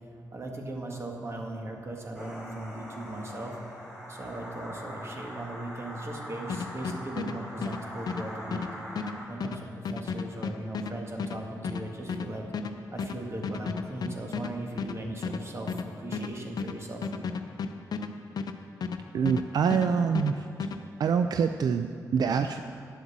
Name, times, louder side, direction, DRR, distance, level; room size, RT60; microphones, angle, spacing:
voice 1, 0.3-3.6 4.1-8.6 9.3-12.4 12.9-17.0, right 1 dB, 40° right, 1 dB, 1.9 m, -38 dB
sound 1, 2.2-9.3, equal, 15° right, 3.0 m, -42 dB
sound 2, 6.5-19.5 19.7-20.8, left 5 dB, 75° left, 0.6 m, -34 dB
voice 2, 19.1-20.4 21.0-22.6, right 6 dB, 75° right, 8 dB, 0.4 m, -25 dB
10.0 x 7.9 x 7.3 m, 2.4 s
cardioid pair, 70°, 7 cm